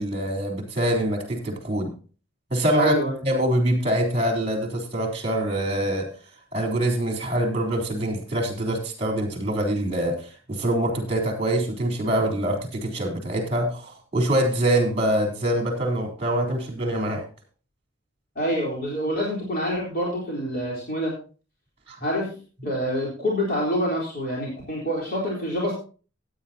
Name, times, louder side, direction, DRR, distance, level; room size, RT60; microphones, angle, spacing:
voice 1, 0.0-1.9 2.5-2.9 3.3-6.1 6.5-17.2 21.9-22.0, right 1 dB, 30° right, 2 dB, 3.6 m, -24 dB
voice 2, 2.7-3.2 18.4-21.1 22.0-22.4 22.6-25.7, equal, 50° left, -4 dB, 3.7 m, -26 dB
16.0 x 9.5 x 2.8 m, 0.36 s
head